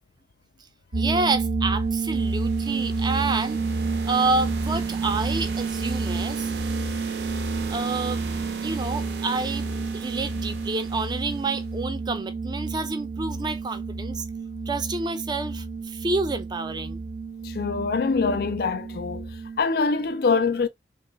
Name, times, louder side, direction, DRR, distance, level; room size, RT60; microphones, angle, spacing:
voice 1, 0.9-3.6 4.1-6.5 7.7-8.2 8.6-9.7 9.9-14.2 14.7-17.0, right 3 dB, 25° right, 0.5 m, -28 dB
sound 1, 0.9-19.6, right 4 dB, 85° right, 1.0 m, -30 dB
sound 2, 1.9-11.7, right 4 dB, 70° right, 0.6 m, -38 dB
voice 2, 17.4-19.3 19.6-20.7, left 4 dB, 60° left, 0.4 m, -24 dB
2.9 x 2.9 x 3.3 m
head